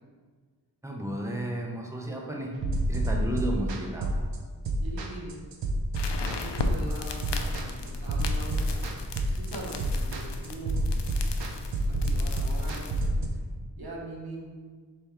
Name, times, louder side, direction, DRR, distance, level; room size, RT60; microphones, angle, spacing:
voice 1, 0.8-2.5 2.9-4.3, right 1 dB, 5° right, -1 dB, 0.7 m, -33 dB
sound 1, 2.6-13.3, right 1 dB, 80° right, 0.6 m, -29 dB
voice 2, 4.8-5.4 6.2-8.8 9.1-11.2 11.9-12.9 13.8-14.5, right 1 dB, 60° right, -3 dB, 1.1 m, -41 dB
sound 2, 5.9-13.1, left 3 dB, 75° left, 0.5 m, -36 dB
3.4 x 3.4 x 4.4 m, 1.5 s
wide cardioid pair, 60°, 42 cm